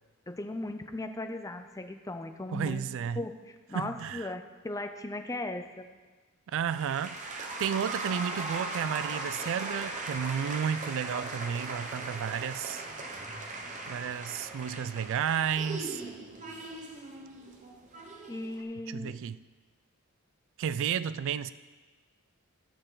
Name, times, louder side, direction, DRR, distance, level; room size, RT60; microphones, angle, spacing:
voice 1, 0.3-2.8 3.2-5.9 18.3-19.2, left 2 dB, 15° left, 7 dB, 0.5 m, -37 dB
voice 2, 2.5-3.2 3.7-4.3 6.5-12.9 13.9-16.0 18.9-19.4 20.6-21.5, right 8 dB, 60° right, 16 dB, 0.3 m, -32 dB
sound 1, 6.7-18.6, right 2 dB, 35° right, 0.9 m, -39 dB
13.0 x 6.5 x 3.8 m, 1.3 s
head